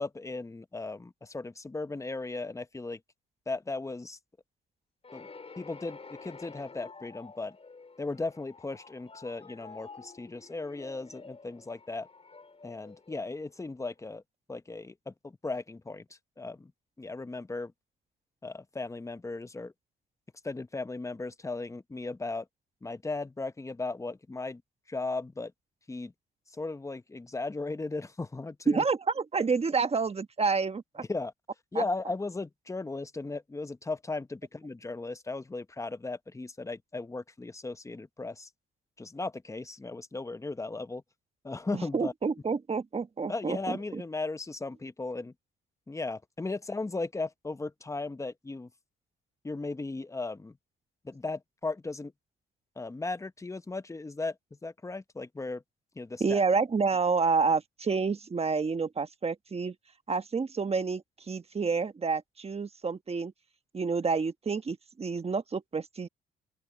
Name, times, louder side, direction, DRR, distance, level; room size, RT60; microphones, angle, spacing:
voice 1, 0.0-3.0 3.5-4.2 5.1-5.3 5.6-7.6 8.0-12.1 12.6-14.2 14.5-16.7 17.0-17.7 18.4-19.7 20.4-22.5 22.8-24.6 24.9-25.5 25.9-26.1 26.5-28.8 31.0-31.3 31.7-38.5 39.0-41.0 41.4-42.1 43.3-45.3 45.9-48.7 49.4-50.6 51.0-52.1 52.8-54.4 54.6-55.6 56.0-56.4, left 3 dB, 15° left, 0.9 m, -36 dB
sound 1, 5.0-13.8, left 4 dB, 30° left, 4.8 m, -50 dB
voice 2, 28.7-31.0 31.7-31.8 41.7-44.0 56.2-59.7 60.1-63.3 63.7-66.1, right 4 dB, 30° right, 1.3 m, -29 dB
open air
cardioid pair, 90°, 20 cm